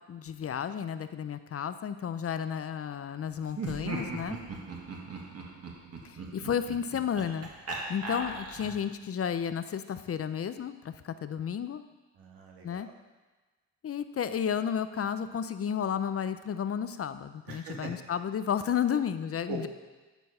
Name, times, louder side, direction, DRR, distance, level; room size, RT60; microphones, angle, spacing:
voice 1, 0.1-4.4 6.0-7.5 7.9-11.8 12.6-12.9 13.8-19.7, left 8 dB, 40° left, 11 dB, 0.6 m, -32 dB
Laughter, 3.5-8.9, right 3 dB, 45° right, 1.8 m, -39 dB
voice 2, 4.6-5.2 12.2-12.9 17.5-17.9 19.5-19.7, right 3 dB, 85° right, 0 dB, 1.9 m, -42 dB
12.0 x 4.6 x 5.5 m, 1.3 s
cardioid pair, 75°, 36 cm